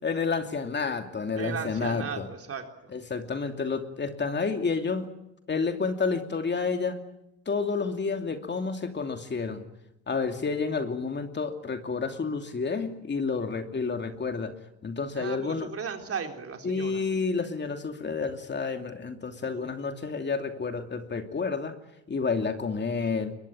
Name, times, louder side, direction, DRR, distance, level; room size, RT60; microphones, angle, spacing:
voice 1, 0.0-2.3 2.9-5.1 5.5-7.0 7.5-9.6 10.1-14.5 14.8-15.7 16.6-21.7 22.1-23.3, left 4 dB, 35° left, 6 dB, 2.7 m, -30 dB
voice 2, 1.4-2.9 15.1-17.0 19.4-19.8, right 6 dB, 50° right, 4 dB, 3.9 m, -36 dB
22.5 x 22.0 x 8.9 m, 0.87 s
cardioid pair, 90°, 30 cm